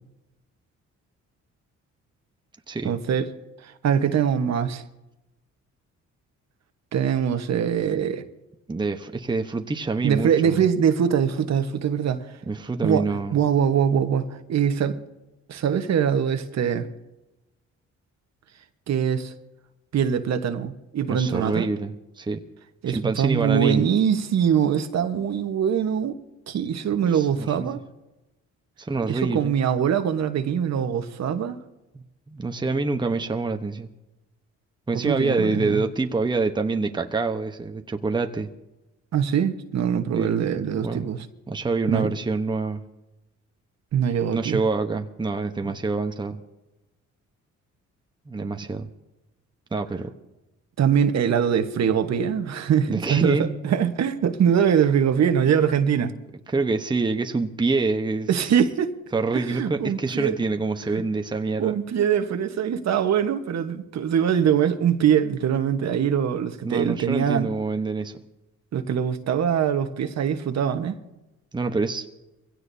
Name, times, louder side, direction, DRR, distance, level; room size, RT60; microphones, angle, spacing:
voice 1, 2.8-3.3 3.6-4.8 6.9-8.2 10.0-12.3 12.8-15.0 15.5-16.9 18.9-19.3 19.9-21.7 22.8-26.1 26.5-27.8 29.0-31.6 34.9-35.8 39.1-41.3 41.9-42.1 43.9-44.6 45.6-45.7 50.8-56.1 58.3-58.9 59.3-60.4 60.9-61.0 61.6-67.5 68.7-71.0, right 8 dB, 60° right, 1.2 m, -23 dB
voice 2, 8.7-10.6 12.4-13.3 21.1-22.4 22.9-23.9 27.1-27.7 28.8-29.5 31.9-33.9 34.9-38.5 40.1-40.4 40.8-41.1 41.5-42.8 44.3-46.4 48.3-48.9 49.7-50.1 52.9-53.6 56.5-58.3 59.1-61.8 66.6-68.2 71.5-72.0, right 3 dB, 15° right, 0.9 m, -26 dB
23.5 x 16.5 x 2.7 m
cardioid pair, 90°, 30 cm